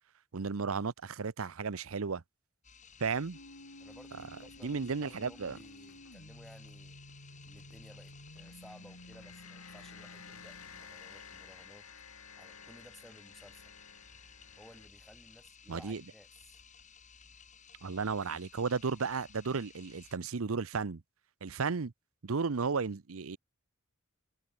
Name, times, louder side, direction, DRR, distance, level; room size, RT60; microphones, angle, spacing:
voice 1, 0.3-2.2 3.0-3.4 4.6-5.6 15.7-16.0 17.8-21.0 21.4-21.9 22.2-23.4, right 5 dB, 70° right, 0.7 m, -34 dB
sound 1, 2.6-20.2, left 6 dB, 35° left, 5.5 m, -57 dB
sound 2, 3.3-14.9, left 3 dB, 80° left, 6.9 m, -52 dB
voice 2, 3.8-7.0 7.4-11.9 12.4-13.7 14.6-16.6, equal, ahead, 4.6 m, -57 dB
head